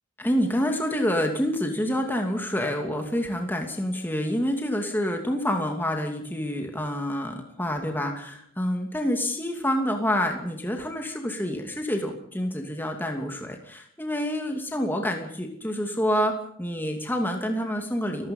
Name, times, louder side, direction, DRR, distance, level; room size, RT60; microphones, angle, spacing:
voice 1, 0.2-16.3 16.6-18.3, equal, 10° left, 3 dB, 2.6 m, -27 dB
29.5 x 16.0 x 5.6 m, 0.64 s
head